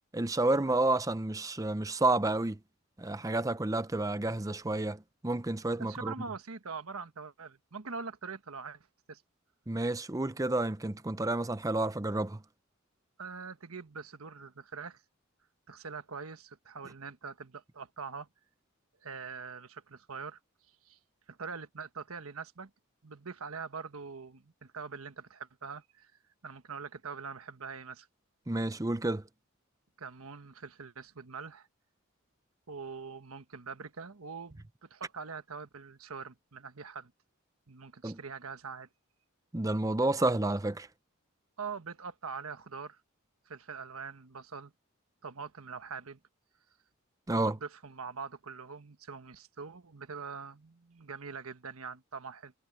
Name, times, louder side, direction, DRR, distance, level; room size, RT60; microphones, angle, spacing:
voice 1, 0.1-2.6 3.0-6.1 9.7-12.4 28.5-29.2 38.0-38.2 39.5-40.9 47.3-47.6, right 2 dB, 15° right, 0.6 m, -30 dB
voice 2, 5.8-9.2 13.2-15.0 15.7-18.3 19.0-20.4 20.7-21.0 21.3-22.7 23.0-26.1 26.4-28.1 30.0-31.7 32.7-37.1 37.7-38.9 41.6-43.0 43.4-44.7 45.2-46.2 47.3-52.5, right 5 dB, 85° right, 1.3 m, -43 dB
head